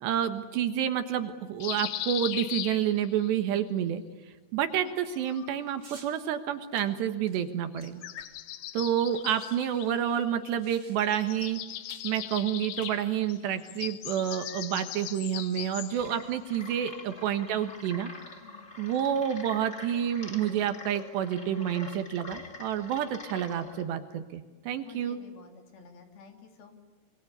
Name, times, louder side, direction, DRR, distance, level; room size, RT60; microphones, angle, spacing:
voice 1, 0.0-4.0 4.5-8.0 8.7-11.6 12.0-18.1 18.8-25.2, right 9 dB, 70° right, 9 dB, 3.3 m, -29 dB
sound 1, 1.6-3.3 4.8-5.8 7.7-10.7 11.0-16.2, left 13 dB, 75° left, 3.2 m, -39 dB
sound 2, 5.8-6.1 6.7-8.6 8.8-8.9 9.1-11.3 11.9-12.1 12.7-13.4, right 3 dB, 25° right, 3.8 m, -54 dB
sound 3, 15.9-23.8, left 3 dB, 20° left, 2.1 m, -46 dB
voice 2, 24.8-26.8, left 6 dB, 55° left, 5 dB, 4.4 m, -51 dB
26.0 x 24.5 x 8.2 m, 1.3 s
omnidirectional pair, 5.5 m